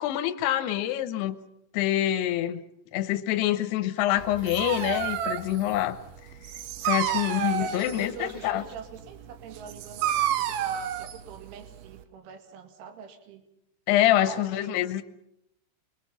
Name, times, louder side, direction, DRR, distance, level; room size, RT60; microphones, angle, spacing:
voice 1, 0.0-1.4 1.7-2.6 2.9-6.0 6.8-8.6 13.9-15.0, left 13 dB, 75° left, 9 dB, 2.6 m, -26 dB
sound 1, 3.8-5.2 6.8-6.9 7.2-9.0, right 3 dB, 35° right, 3.3 m, -52 dB
Dog, 4.2-12.0, right 10 dB, 85° right, 2.1 m, -31 dB
voice 2, 7.6-13.4 14.2-14.9, right 7 dB, 70° right, 5 dB, 4.5 m, -43 dB
26.5 x 22.5 x 5.7 m, 0.80 s
omnidirectional pair, 5.8 m